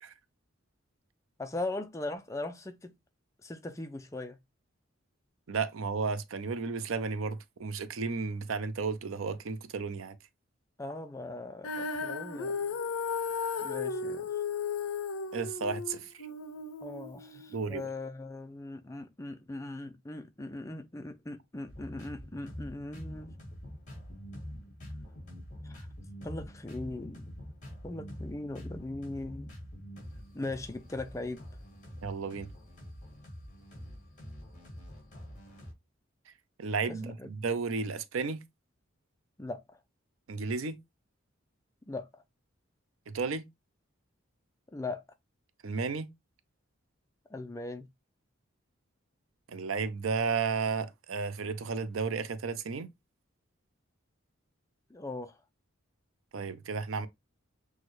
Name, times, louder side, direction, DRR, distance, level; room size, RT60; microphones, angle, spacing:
voice 1, 1.4-3.0 3.4-4.4 10.8-12.6 13.6-14.3 16.8-23.3 25.6-25.9 26.2-27.3 27.8-29.5 30.3-31.5 36.9-37.3 39.4-39.8 41.8-42.2 44.7-45.0 47.3-47.9 54.9-55.4, left 2 dB, 15° left, 0.4 m, -39 dB
voice 2, 5.5-10.2 15.3-16.1 17.5-17.9 32.0-32.5 36.6-38.4 40.3-40.8 43.1-43.4 45.6-46.1 49.5-52.9 56.3-57.1, right 5 dB, 75° right, 0.5 m, -33 dB
Female singing, 11.6-17.9, left 5 dB, 85° left, 0.5 m, -35 dB
sound 1, 21.7-35.7, equal, 35° left, 2.4 m, -45 dB
6.2 x 2.3 x 3.1 m
head